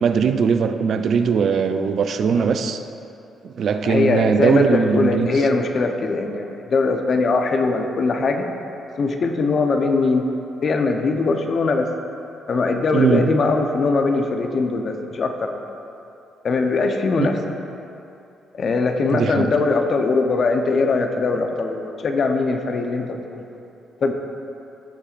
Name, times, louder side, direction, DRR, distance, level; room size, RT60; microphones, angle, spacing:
voice 1, 0.0-2.8 3.4-5.3 12.9-13.3 17.2-17.3 19.1-19.5, right 6 dB, 60° right, 8 dB, 0.5 m, -20 dB
voice 2, 3.8-8.5 9.0-10.2 10.6-11.9 12.5-15.6 16.4-17.5 18.5-23.4 24.0-24.1, left 3 dB, 50° left, 4 dB, 0.8 m, -21 dB
15.0 x 6.9 x 2.5 m, 2.8 s
cardioid pair, 90°, 0 cm